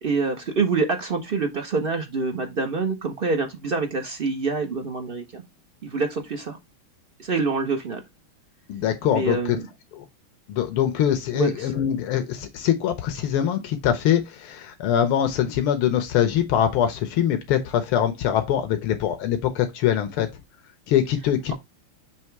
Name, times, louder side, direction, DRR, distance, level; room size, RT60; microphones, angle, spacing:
voice 1, 0.0-5.4 5.8-6.6 7.2-8.0 9.0-9.6 11.3-11.5, right 4 dB, 55° right, 0.6 m, -26 dB
voice 2, 8.7-9.6 9.9-10.0 10.5-20.3 20.9-21.5, left 10 dB, 85° left, 1.7 m, -23 dB
6.9 x 3.0 x 4.5 m
omnidirectional pair, 2.3 m